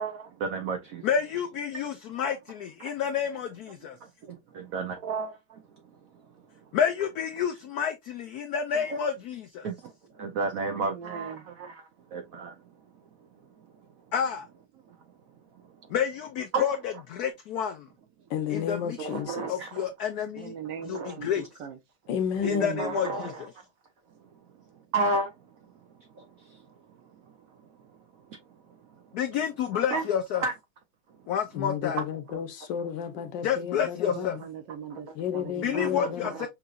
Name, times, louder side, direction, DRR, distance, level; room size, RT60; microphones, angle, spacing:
voice 1, 0.0-1.0 2.8-2.9 4.3-5.6 8.9-9.0 9.6-9.9 10.2-11.8 12.1-12.5 16.5-16.6 19.0-19.8 20.9-21.1 22.8-23.4 24.9-25.3 26.2-26.6 29.9-30.0 30.4-30.5 32.3-32.4 35.7-36.1, right 3 dB, 90° right, 0.7 m, -32 dB
voice 2, 1.0-4.0 6.7-9.7 14.1-14.5 15.9-17.9 18.5-19.0 19.5-20.5 20.8-21.4 22.4-23.5 29.1-30.4 31.3-32.0 33.4-34.4 35.6-36.5, left 8 dB, 85° left, 0.8 m, -29 dB
voice 3, 10.8-11.5 20.4-21.8 22.4-23.0 34.0-35.1 35.3-36.0, right 7 dB, 65° right, 1.4 m, -39 dB
voice 4, 18.3-19.5 22.1-22.8 31.5-34.4 35.2-36.3, left 8 dB, 70° left, 1.3 m, -32 dB
5.7 x 2.8 x 2.4 m
omnidirectional pair, 2.2 m